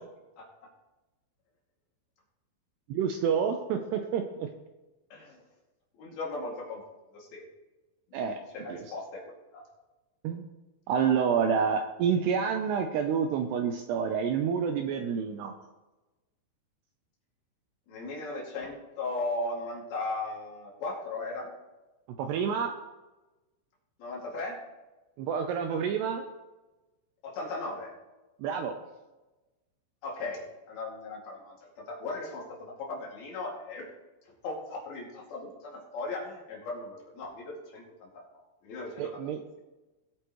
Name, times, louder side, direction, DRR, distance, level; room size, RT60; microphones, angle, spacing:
voice 1, 2.9-4.5 8.1-8.4 8.7-8.8 10.2-10.5 10.9-15.5 22.2-22.7 25.2-26.2 28.4-28.7 39.0-39.4, right 7 dB, 85° right, 5 dB, 2.4 m, -28 dB
voice 2, 5.1-5.4 6.0-6.8 7.1-7.4 8.1-9.6 17.9-21.5 24.0-24.6 27.2-27.9 30.0-33.8 34.4-38.2 38.6-39.0, left 2 dB, 55° left, -2 dB, 3.8 m, -37 dB
19.5 x 8.1 x 3.1 m, 1.1 s
omnidirectional pair, 5.6 m